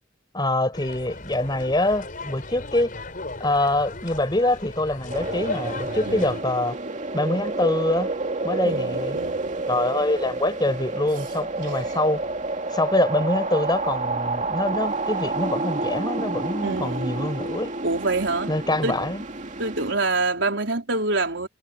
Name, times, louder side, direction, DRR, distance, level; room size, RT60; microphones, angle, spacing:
voice 1, 0.3-2.9 3.4-6.8 7.1-8.1 8.4-9.2 9.7-12.2 12.7-17.7 18.5-19.2, left 1 dB, 25° left, 5.7 m, -25 dB
sound 1, 0.7-6.4, left 2 dB, 45° left, 5.6 m, -36 dB
sound 2, 5.1-19.9, right 3 dB, 40° right, 2.3 m, -29 dB
voice 2, 6.1-6.4 8.6-9.5 16.6-17.2 17.8-18.5 18.8-19.1 19.6-21.5, right 3 dB, 75° right, 4.3 m, -26 dB
head